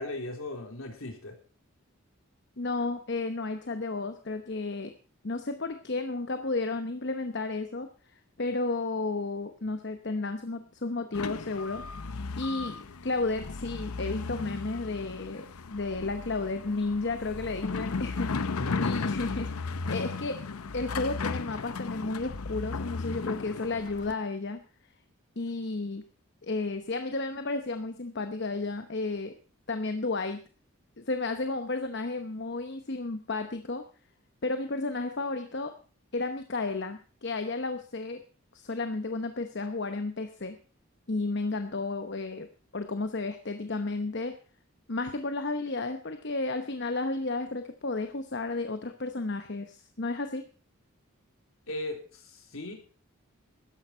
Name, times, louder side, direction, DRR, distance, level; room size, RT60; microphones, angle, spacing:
voice 1, 0.0-1.3 18.6-18.9 51.7-52.7, left 1 dB, 70° left, 3 dB, 3.7 m, -37 dB
voice 2, 2.6-4.9 5.2-11.8 12.1-20.4 20.7-24.6 25.4-26.0 26.4-29.3 29.7-30.4 31.0-33.8 34.4-35.7 36.1-38.2 38.5-40.6 41.1-42.5 42.7-44.3 44.9-50.4, left 3 dB, 50° left, 8 dB, 0.9 m, -32 dB
sound 1, 11.1-24.1, left 4 dB, 90° left, 0.7 m, -35 dB
13.0 x 10.5 x 5.5 m, 0.39 s
head